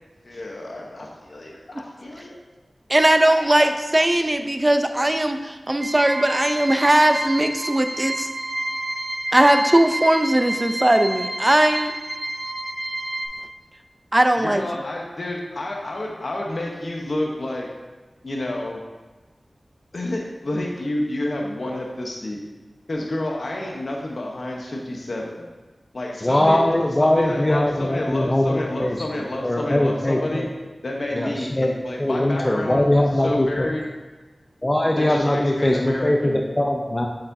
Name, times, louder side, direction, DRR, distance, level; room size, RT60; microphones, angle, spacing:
voice 1, 0.2-2.4 3.2-3.6 14.4-17.7 18.2-18.8 19.9-22.4 22.9-25.4 25.9-30.4 30.8-33.8 35.0-36.4, left 1 dB, 70° left, -1 dB, 0.9 m, -29 dB
voice 2, 2.9-8.3 9.3-11.9 14.1-14.6, right 1 dB, 25° right, 7 dB, 0.6 m, -19 dB
sound 1, 5.8-13.3, right 1 dB, 40° right, 1.5 m, -29 dB
voice 3, 26.2-29.0 29.4-30.5 31.1-31.7 32.0-33.7 34.6-37.1, left 1 dB, 25° left, 1 dB, 0.6 m, -21 dB
7.3 x 7.0 x 2.7 m, 1.2 s
wide cardioid pair, 55°, 0 cm